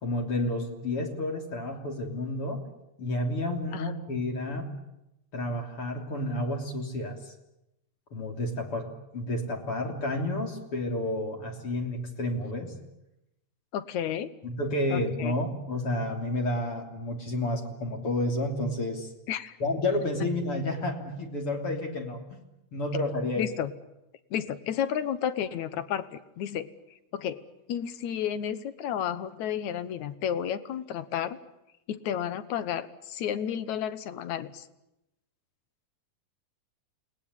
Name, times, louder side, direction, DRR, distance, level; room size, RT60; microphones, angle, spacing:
voice 1, 0.0-2.6 3.0-4.7 5.3-7.2 8.1-8.9 9.1-12.7 14.4-19.1 19.6-22.4 22.7-23.4, left 1 dB, 40° left, 2 dB, 3.9 m, -30 dB
voice 2, 13.7-14.3 14.9-15.3 19.3-19.5 23.4-23.7 24.3-26.7 27.1-27.4 27.7-31.4 31.9-34.7, left 9 dB, 65° left, 13 dB, 2.3 m, -32 dB
28.5 x 20.0 x 9.9 m, 0.91 s
omnidirectional pair, 3.9 m